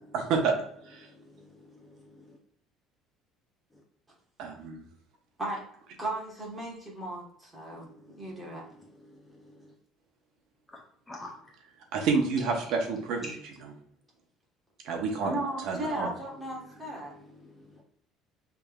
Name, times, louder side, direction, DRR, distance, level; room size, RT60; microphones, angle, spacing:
voice 1, 0.1-0.5 0.8-1.1 4.4-4.8 11.9-13.7 14.8-16.1, right 4 dB, 55° right, 3 dB, 0.8 m, -29 dB
voice 2, 1.8-2.3 8.1-8.2 9.3-9.6 10.7-10.8 11.1-11.3 13.2-13.3 17.4-17.8, left 1 dB, 10° left, 0 dB, 0.5 m, -46 dB
voice 3, 6.0-7.9 8.2-8.6 15.2-17.1, right 1 dB, 10° right, -4 dB, 1.3 m, -36 dB
6.8 x 3.3 x 2.3 m, 0.65 s
cardioid pair, 175°, 0 cm